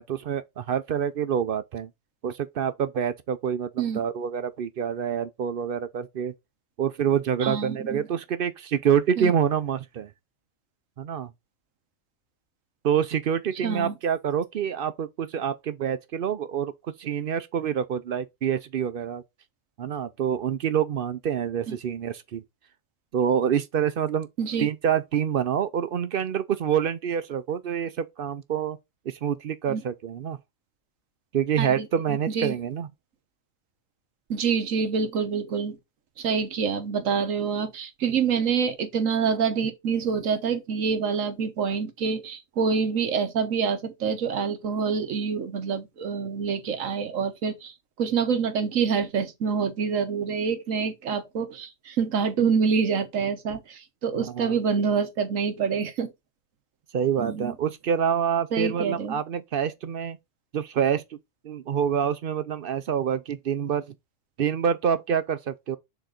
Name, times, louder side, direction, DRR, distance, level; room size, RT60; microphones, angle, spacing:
voice 1, 0.0-1.9 2.2-6.3 6.8-10.1 11.0-11.3 12.8-16.7 17.0-19.2 19.8-22.4 23.1-24.3 24.6-28.8 29.1-30.4 31.3-32.9 54.2-54.6 56.9-60.2 60.5-61.2 61.4-63.9 64.4-65.8, right 8 dB, 60° right, 0.6 m, -27 dB
voice 2, 7.4-8.1 9.2-9.3 13.6-13.9 21.7-21.8 24.4-24.7 29.7-29.8 31.6-32.6 34.3-35.8 36.2-56.1 57.2-57.5 58.5-59.2, right 6 dB, 90° right, 1.4 m, -26 dB
6.9 x 3.8 x 3.8 m
omnidirectional pair, 1.3 m